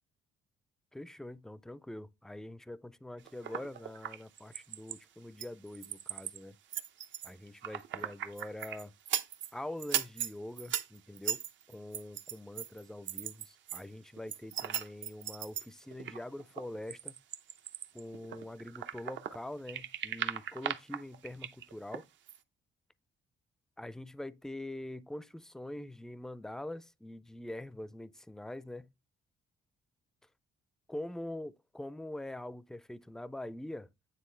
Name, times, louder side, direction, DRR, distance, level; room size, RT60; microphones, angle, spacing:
voice 1, 0.9-6.6 7.2-8.9 9.5-11.4 11.7-17.1 17.9-22.1 23.8-28.9 30.9-34.1, left 1 dB, 5° left, 0.4 m, -44 dB
sound 1, 3.3-5.0 5.4-6.4 6.7-9.5 9.8-13.8 14.2-19.4 19.7-22.0 22.3-22.4, right 10 dB, 70° right, 0.7 m, -38 dB
9.2 x 3.7 x 3.2 m
cardioid pair, 90°, 20 cm